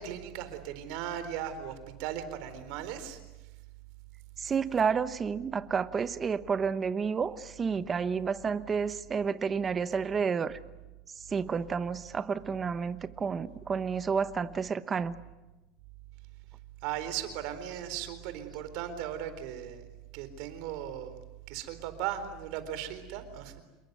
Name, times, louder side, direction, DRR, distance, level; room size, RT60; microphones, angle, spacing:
voice 1, 0.0-3.2 16.8-19.8 20.1-21.2 21.5-23.6, right 10 dB, 60° right, 11 dB, 4.1 m, -37 dB
voice 2, 4.4-10.6 11.3-15.2, right 6 dB, 20° right, 13 dB, 1.0 m, -30 dB
27.5 x 22.0 x 9.4 m, 1.1 s
supercardioid pair, 155°, 0 cm